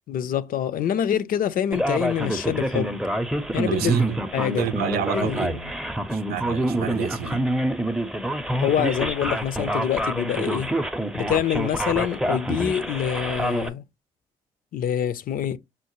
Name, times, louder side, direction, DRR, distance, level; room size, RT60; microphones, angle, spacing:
voice 1, 0.1-3.0 3.5-4.0 4.3-4.7 5.1-5.4 8.6-10.7 11.1-13.8 14.7-15.6, left 9 dB, 60° left, 0.5 m, -25 dB
Male speech man speaking, 1.7-13.7, right 1 dB, 5° right, 0.6 m, -27 dB
voice 2, 3.7-4.2 4.6-5.8 6.1-7.4, right 8 dB, 70° right, 0.5 m, -28 dB
5.6 x 2.1 x 3.0 m
hypercardioid pair, 50°, 16 cm